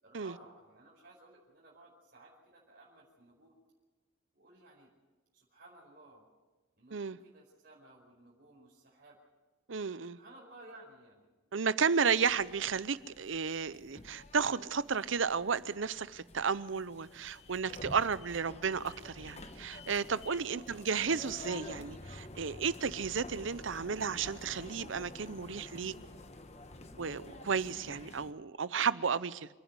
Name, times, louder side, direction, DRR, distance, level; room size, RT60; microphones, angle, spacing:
voice 1, 0.0-3.5 4.3-4.9 5.3-6.3 6.8-9.2 10.1-11.3 11.7-11.9 20.7-20.9, right 2 dB, 50° right, 4.9 m, -57 dB
voice 2, 9.7-10.2 11.5-25.9 27.0-29.5, right 6 dB, 75° right, 0.7 m, -33 dB
sound 1, 12.3-28.3, left 2 dB, 35° left, 1.2 m, -50 dB
28.0 x 10.5 x 9.6 m
head